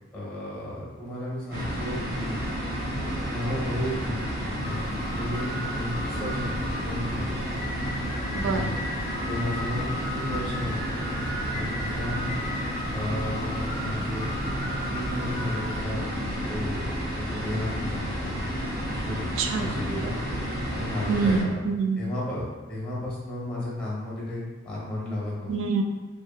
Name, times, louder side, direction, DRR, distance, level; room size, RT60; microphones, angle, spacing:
voice 1, 0.1-2.4 3.2-4.8 5.1-7.4 8.3-8.7 9.2-11.0 11.5-12.2 12.9-14.4 14.9-16.1 16.5-16.8 17.2-18.5 18.8-19.3 19.6-20.2 20.7-21.6 22.0-25.5, left 1 dB, 5° left, -6 dB, 0.9 m, -33 dB
sound 1, 1.5-21.4, equal, 50° right, 0.7 m, -31 dB
sound 2, 4.6-15.8, left 1 dB, 35° left, 0.4 m, -37 dB
voice 2, 8.3-8.8 19.4-19.7 21.1-22.0 25.5-25.8, right 4 dB, 85° right, 4 dB, 0.3 m, -25 dB
2.8 x 2.6 x 2.3 m, 1.2 s
head